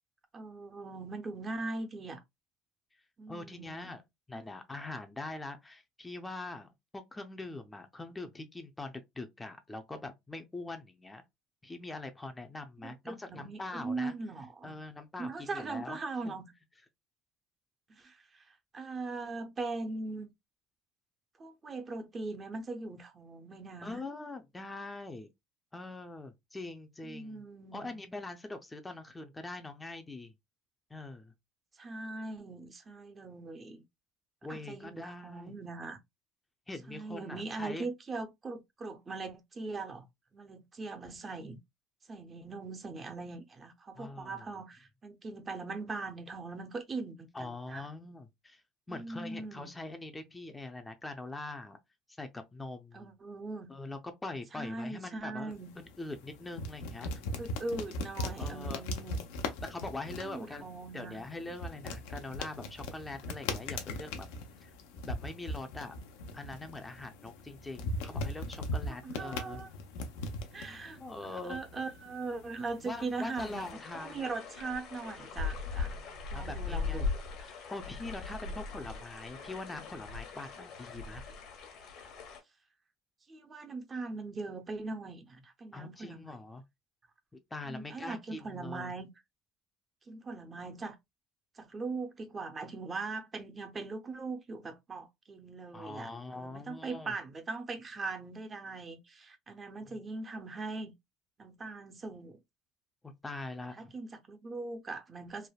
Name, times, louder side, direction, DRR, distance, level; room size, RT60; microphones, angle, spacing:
voice 1, 0.3-2.2 3.2-4.0 4.3-4.4 12.8-14.8 15.2-16.5 17.9-18.4 18.7-20.3 21.4-24.0 27.0-28.0 31.8-33.8 34.5-36.0 36.9-40.1 40.3-41.6 42.1-47.9 48.9-49.7 52.9-53.7 54.5-55.7 57.4-59.2 60.2-61.2 68.9-69.7 70.5-73.7 73.9-76.0 76.3-77.1 83.3-86.3 87.7-89.1 90.1-91.0 91.6-100.9 101.4-102.4 103.8-105.5, right 3 dB, 30° right, 0.6 m, -40 dB
voice 2, 3.3-4.0 4.3-11.2 11.6-14.2 14.6-16.0 16.2-16.3 23.8-25.3 25.7-27.4 27.7-30.3 30.9-31.3 34.4-35.5 36.7-37.9 43.9-44.6 47.3-48.6 48.9-51.8 52.2-53.1 53.7-57.3 58.4-58.9 59.6-60.6 60.9-64.3 64.6-64.7 65.0-66.0 66.3-69.6 70.6-71.6 72.8-74.3 76.0-77.1 77.4-81.2 85.7-86.6 87.5-88.9 95.7-97.2 99.9-100.0 103.0-103.9, left 2 dB, 15° left, 0.5 m, -43 dB
sound 1, 55.5-73.7, left 2 dB, 85° left, 0.6 m, -40 dB
sound 2, 73.4-82.4, left 4 dB, 65° left, 1.0 m, -39 dB
3.3 x 2.0 x 2.2 m
supercardioid pair, 105°, 0 cm